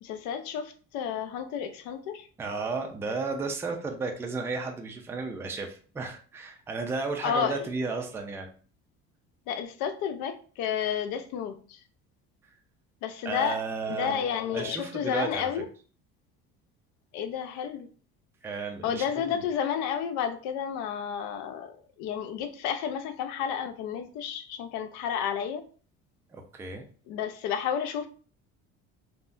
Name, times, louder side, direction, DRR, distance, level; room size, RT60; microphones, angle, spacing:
voice 1, 0.0-2.3 7.2-7.7 9.5-11.8 13.0-13.6 13.9-15.7 17.1-17.9 18.8-25.6 27.1-28.1, left 8 dB, 80° left, 8 dB, 0.5 m, -31 dB
voice 2, 2.4-8.5 13.2-14.2 14.5-15.5 18.4-19.4 26.3-26.8, right 4 dB, 10° right, 3 dB, 0.3 m, -33 dB
3.4 x 2.1 x 2.5 m, 0.41 s
cardioid pair, 135°, 29 cm